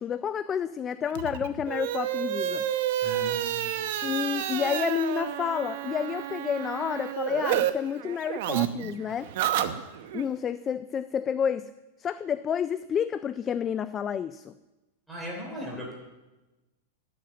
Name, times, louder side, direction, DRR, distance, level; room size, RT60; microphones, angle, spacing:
voice 1, 0.0-2.7 4.0-9.3 10.1-11.7 12.0-14.6, left 8 dB, 20° left, 13 dB, 0.3 m, -30 dB
sound 1, 1.1-7.7 8.0-10.2, right 11 dB, 60° right, 0.8 m, -30 dB
voice 2, 3.0-3.8 15.1-15.9, left 1 dB, 5° right, -3 dB, 3.2 m, -38 dB
11.5 x 7.6 x 7.8 m, 1.1 s
supercardioid pair, 150°, 0 cm